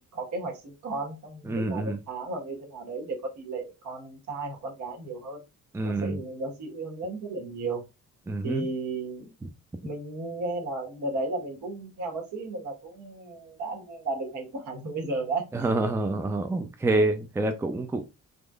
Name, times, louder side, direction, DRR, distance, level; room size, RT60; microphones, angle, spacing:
voice 1, 0.0-5.4 5.8-7.8 8.4-9.3 9.8-15.7 16.9-17.1, right 3 dB, 75° right, 1.5 m, -34 dB
voice 2, 1.5-2.0 5.7-6.2 8.3-8.7 15.5-18.0, right 2 dB, 10° right, 0.4 m, -27 dB
3.6 x 3.0 x 2.4 m
cardioid pair, 90°, 30 cm